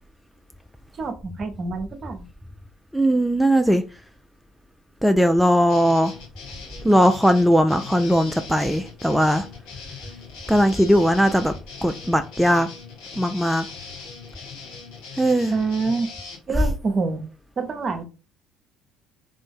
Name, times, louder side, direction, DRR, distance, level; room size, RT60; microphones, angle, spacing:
voice 1, 1.0-2.3 15.5-16.1 16.5-17.2 17.6-18.0, right 4 dB, 40° right, 0.7 m, -26 dB
voice 2, 2.9-3.8 5.0-6.1 6.8-9.4 10.5-11.5 11.8-12.7 13.2-13.6 15.2-15.5, equal, ahead, 0.3 m, -19 dB
sound 1, 5.7-16.4, left 5 dB, 65° left, 0.9 m, -40 dB
3.7 x 2.5 x 3.6 m
figure-of-eight pair, 55°, 0 cm